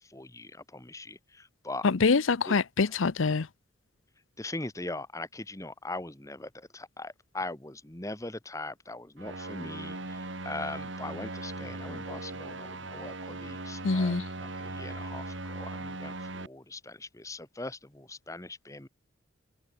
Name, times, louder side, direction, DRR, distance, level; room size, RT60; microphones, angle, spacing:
voice 1, 0.0-1.9 2.5-2.6 4.4-18.9, left 2 dB, 15° left, 1.4 m, -41 dB
voice 2, 1.8-3.5 13.8-14.2, left 4 dB, 90° left, 0.7 m, -25 dB
sound 1, 9.2-16.5, right 2 dB, 70° right, 3.6 m, -39 dB
head